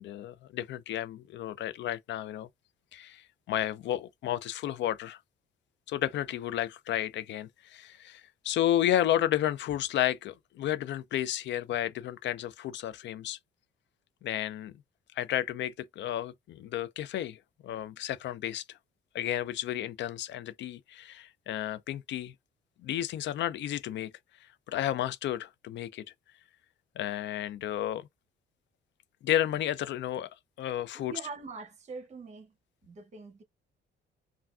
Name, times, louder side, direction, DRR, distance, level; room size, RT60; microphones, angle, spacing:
voice 1, 0.0-2.5 2.9-5.2 5.9-13.4 14.2-14.7 15.2-18.8 19.1-22.3 22.8-24.1 24.7-26.0 27.0-28.1 29.2-30.3 30.6-31.1, left 12 dB, 65° left, 0.4 m, -32 dB
voice 2, 30.9-32.5 32.8-33.4, right 4 dB, 35° right, 0.8 m, -43 dB
3.4 x 2.2 x 2.4 m
cardioid pair, 90°, 20 cm